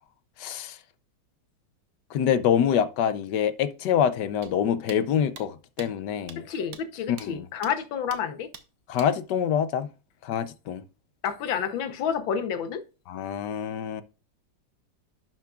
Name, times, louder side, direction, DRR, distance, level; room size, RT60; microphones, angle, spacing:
voice 1, 0.4-0.8 2.1-6.4 7.1-7.5 8.9-9.9 10.2-10.8 13.1-14.0, left 8 dB, 70° left, 1.3 m, -26 dB
sound 1, 4.4-4.5 4.9-5.0 5.4-5.5 5.8-5.9 6.3-6.4 6.7-6.8 7.2-7.3 7.6-7.7 8.1-8.2 8.5-8.6 9.0-9.1, right 8 dB, 65° right, 1.4 m, -43 dB
voice 2, 6.4-8.5 11.2-12.8, left 7 dB, 85° left, 1.8 m, -29 dB
11.5 x 7.4 x 2.4 m
omnidirectional pair, 2.1 m